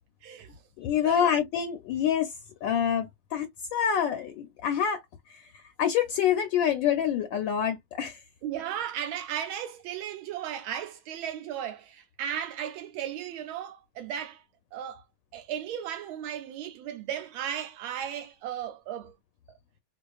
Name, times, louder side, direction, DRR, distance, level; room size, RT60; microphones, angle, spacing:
voice 1, 0.2-0.5 1.0-1.2 8.4-14.4 14.7-15.0 15.3-19.1, right 10 dB, 75° right, 1.3 m, -35 dB
voice 2, 0.8-2.3 2.6-5.0 5.3-8.2, left 9 dB, 75° left, 1.2 m, -27 dB
4.3 x 2.4 x 2.3 m
omnidirectional pair, 2.3 m